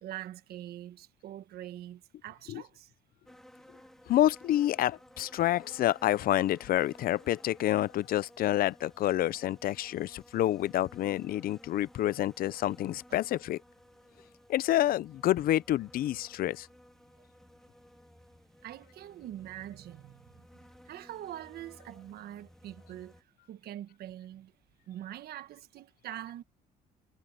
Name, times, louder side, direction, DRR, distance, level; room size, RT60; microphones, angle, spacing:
voice 1, 0.0-2.9 13.1-13.2 18.6-24.5 24.9-26.4, right 12 dB, 70° right, 1.5 m, -44 dB
sound 1, 3.3-23.2, equal, ahead, 3.2 m, -57 dB
voice 2, 4.1-13.6 14.5-16.7, left 13 dB, 60° left, 0.6 m, -28 dB
cardioid pair, 110°, 17 cm